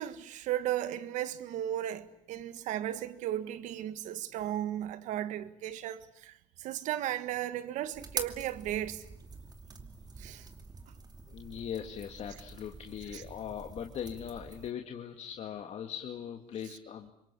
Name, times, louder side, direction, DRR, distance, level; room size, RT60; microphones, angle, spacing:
voice 1, 0.0-9.0 10.2-10.5 13.1-13.2, right 12 dB, 80° right, 1.7 m, -35 dB
sound 1, 7.9-14.7, right 4 dB, 30° right, 2.6 m, -45 dB
voice 2, 11.3-17.1, left 8 dB, 60° left, 2.1 m, -40 dB
26.5 x 22.5 x 8.4 m
cardioid pair, 85°, 13 cm